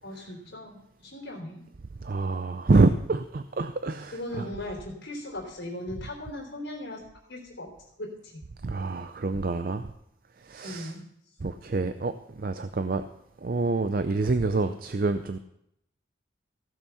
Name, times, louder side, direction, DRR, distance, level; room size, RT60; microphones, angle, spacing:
voice 1, 0.0-1.6 4.1-7.0 7.3-7.7 8.0-8.4 10.6-11.0 14.5-14.7, left 1 dB, 70° left, -3 dB, 3.2 m, -38 dB
voice 2, 2.0-4.5 8.6-9.9 10.4-10.9 11.4-13.0 13.4-15.4, right 3 dB, 50° right, 9 dB, 0.5 m, -26 dB
15.5 x 7.1 x 5.6 m, 0.78 s
head